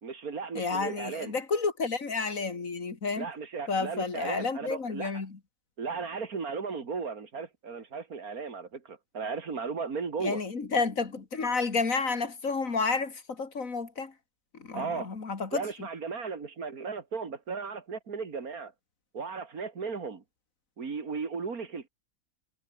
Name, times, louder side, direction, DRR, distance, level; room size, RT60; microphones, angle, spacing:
voice 1, 0.0-1.3 3.2-5.1 5.8-10.4 14.7-15.1 15.5-18.7 19.1-20.2 20.8-21.9, right 5 dB, 90° right, 2.8 m, -36 dB
voice 2, 0.5-3.3 3.7-5.4 10.2-14.1 14.5-15.9, left 4 dB, 65° left, 2.9 m, -31 dB
omnidirectional pair, 1.5 m